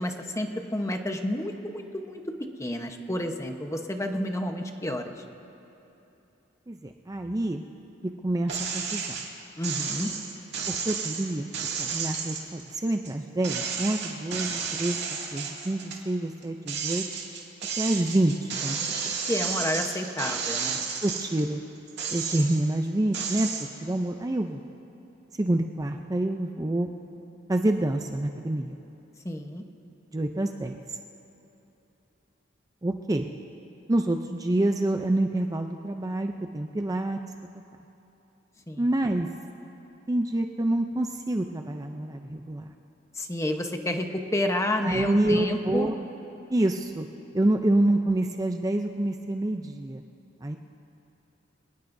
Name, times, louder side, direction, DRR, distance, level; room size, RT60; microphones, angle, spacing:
voice 1, 0.0-2.2 2.6-5.1 9.6-10.1 19.3-20.8 29.2-29.6 38.7-38.8 43.1-45.9, left 1 dB, 15° left, 5 dB, 1.0 m, -30 dB
voice 2, 6.7-7.6 8.0-9.0 10.7-11.5 11.8-15.0 15.3-17.0 17.8-18.8 19.1-19.2 21.0-21.6 22.1-23.5 23.8-24.6 25.4-26.9 27.5-28.8 30.1-31.0 32.8-33.3 33.9-37.2 38.8-39.3 40.1-42.7 44.8-45.9 46.5-47.1 47.3-50.0 50.4-50.6, right 1 dB, 20° right, 4 dB, 0.5 m, -27 dB
sound 1, 8.5-9.3 9.6-13.1 13.4-16.0 16.4-21.4 21.9-22.7 23.1-23.7, right 6 dB, 60° right, 2.3 m, -32 dB
26.5 x 18.5 x 2.7 m, 3.0 s
head